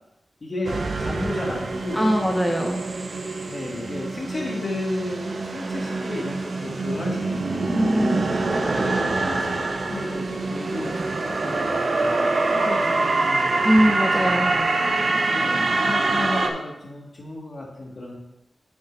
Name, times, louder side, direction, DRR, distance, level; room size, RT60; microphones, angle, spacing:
voice 1, 0.4-2.1 3.4-8.1 8.8-13.7 14.2-14.5 15.3-18.2, left 2 dB, 45° left, -3 dB, 1.9 m, -33 dB
sound 1, 0.6-16.5, right 3 dB, 60° right, 0.7 m, -25 dB
voice 2, 2.0-2.8 7.7-8.4 13.6-14.5, equal, ahead, 1 dB, 0.7 m, -21 dB
8.2 x 6.4 x 2.7 m, 0.88 s
wide cardioid pair, 95°, 0 cm